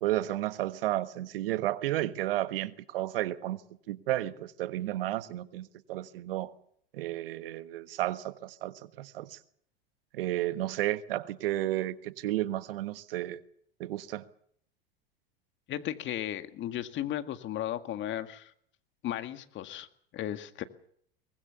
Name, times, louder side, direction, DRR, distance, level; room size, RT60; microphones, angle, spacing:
voice 1, 0.0-3.6 3.9-6.5 6.9-9.4 10.1-13.4 13.8-14.2, right 14 dB, 70° right, 1.4 m, -32 dB
voice 2, 15.7-18.5 19.0-19.9 20.1-20.6, left 12 dB, 40° left, 1.9 m, -35 dB
23.5 x 20.0 x 7.0 m
hypercardioid pair, 90°, 29 cm